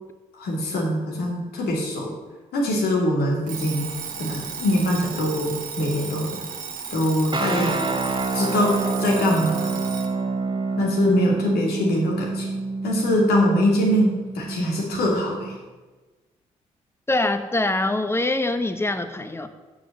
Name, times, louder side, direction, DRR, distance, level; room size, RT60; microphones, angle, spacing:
voice 1, 0.4-2.1 2.5-3.9 4.2-6.4 6.9-7.7 8.3-8.7 9.0-9.7 10.8-12.5 12.8-15.3, left 1 dB, 65° left, -2 dB, 2.7 m, -23 dB
Alarm, 3.5-10.2, right 6 dB, 55° right, 1.4 m, -35 dB
sound 1, 7.3-15.6, right 3 dB, 30° right, 1.4 m, -27 dB
voice 2, 17.1-19.5, left 2 dB, 15° left, 9 dB, 1.0 m, -24 dB
7.7 x 6.0 x 7.3 m, 1.2 s
hypercardioid pair, 40°, 17 cm